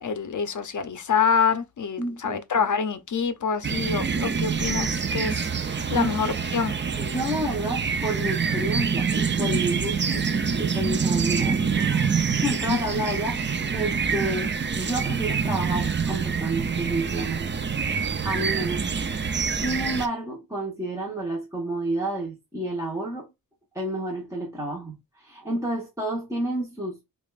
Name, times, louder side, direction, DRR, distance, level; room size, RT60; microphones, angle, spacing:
voice 1, 0.0-5.5 5.9-6.7 12.7-12.8, left 6 dB, 55° left, 0.6 m, -26 dB
voice 2, 2.0-2.6 5.8-6.1 7.0-10.3 10.6-17.5 18.2-18.8 19.5-23.3 23.7-27.0, right 1 dB, 10° right, 1.0 m, -30 dB
sound 1, 3.6-20.1, right 6 dB, 30° right, 0.4 m, -26 dB
5.0 x 2.4 x 2.3 m
wide cardioid pair, 150°, 36 cm